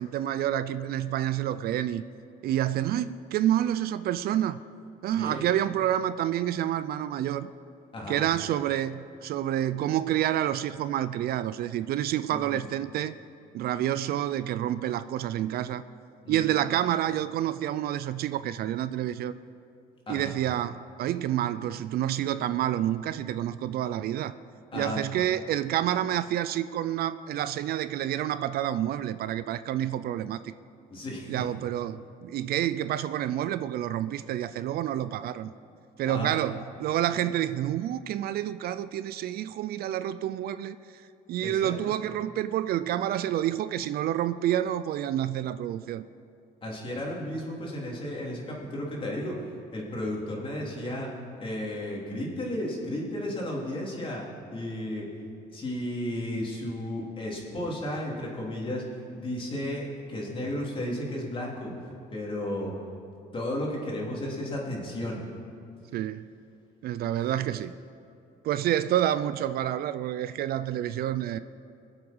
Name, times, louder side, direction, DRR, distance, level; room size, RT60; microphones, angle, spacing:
voice 1, 0.0-2.0 2.4-4.6 5.0-7.5 8.1-13.1 13.5-15.8 16.3-19.4 20.1-24.3 24.7-30.4 31.3-35.5 36.0-40.8 41.3-46.1 65.9-66.3 66.8-67.7 68.4-71.4, right 11 dB, 65° right, 14 dB, 0.5 m, -28 dB
voice 2, 5.1-5.4 7.9-8.2 12.3-12.6 16.3-16.5 20.1-20.3 24.7-25.0 30.9-31.3 36.1-36.3 41.4-41.7 46.6-49.4 49.7-51.1 51.4-54.2 54.5-55.1 55.5-58.8 59.1-61.7 62.1-62.7 63.3-65.2 67.3-67.4, left 1 dB, 30° left, -3 dB, 3.6 m, -33 dB
24.0 x 8.0 x 5.5 m, 2.5 s
cardioid pair, 110°, 17 cm